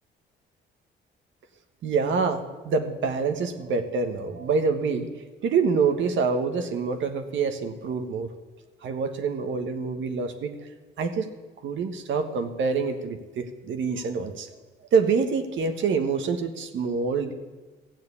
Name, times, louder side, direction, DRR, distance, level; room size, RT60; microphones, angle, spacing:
voice 1, 1.8-5.1 5.4-8.3 8.8-10.5 11.0-11.3 11.6-14.5 14.9-17.3, right 5 dB, 75° right, 6 dB, 1.4 m, -26 dB
14.5 x 7.7 x 8.4 m, 1.2 s
cardioid pair, 90°, 20 cm